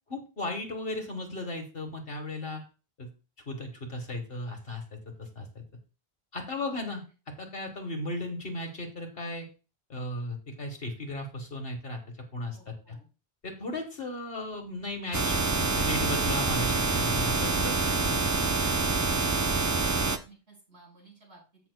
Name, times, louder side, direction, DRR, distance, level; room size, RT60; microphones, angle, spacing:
voice 1, 0.1-2.6 3.0-3.1 3.5-5.6 6.3-7.0 7.4-9.5 9.9-12.0 12.3-13.0 13.4-18.3, left 2 dB, 65° left, 4 dB, 1.6 m, -36 dB
voice 2, 12.5-13.1 18.6-21.4, right 1 dB, 80° right, -3 dB, 5.5 m, -53 dB
sound 1, 15.1-20.2, right 3 dB, 25° right, 0.4 m, -26 dB
14.5 x 5.9 x 2.2 m, 0.33 s
omnidirectional pair, 1.1 m